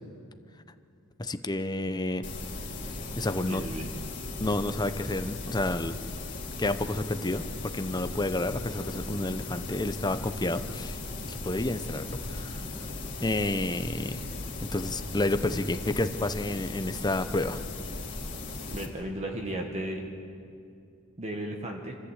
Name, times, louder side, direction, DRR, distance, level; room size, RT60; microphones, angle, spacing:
voice 1, 1.2-2.3 3.1-3.6 4.4-5.9 6.6-7.5 7.7-11.0 11.2-12.6 13.2-14.2 14.7-17.6, left 2 dB, 20° left, 10 dB, 0.8 m, -30 dB
sound 1, 2.2-18.9, left 2 dB, 40° left, 2.6 m, -37 dB
voice 2, 3.4-3.9 18.7-20.0 21.2-22.0, right 1 dB, 30° right, 1 dB, 1.6 m, -35 dB
26.5 x 14.0 x 8.2 m, 2.5 s
head